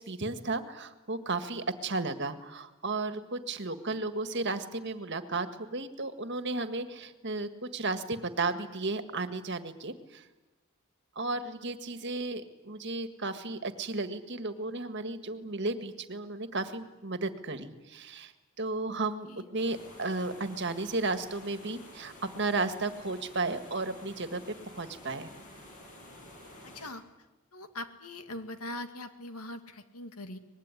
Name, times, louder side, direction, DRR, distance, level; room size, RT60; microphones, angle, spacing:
voice 1, 0.0-10.2 11.2-18.3 18.6-24.4 24.7-25.3, right 3 dB, 50° right, 9 dB, 1.8 m, -34 dB
sound 1, 19.6-26.9, left 1 dB, 35° left, 7.3 m, -50 dB
voice 2, 26.6-27.0 27.5-30.4, left 1 dB, 90° left, 8 dB, 2.3 m, -41 dB
24.5 x 21.0 x 9.9 m, 1.1 s
head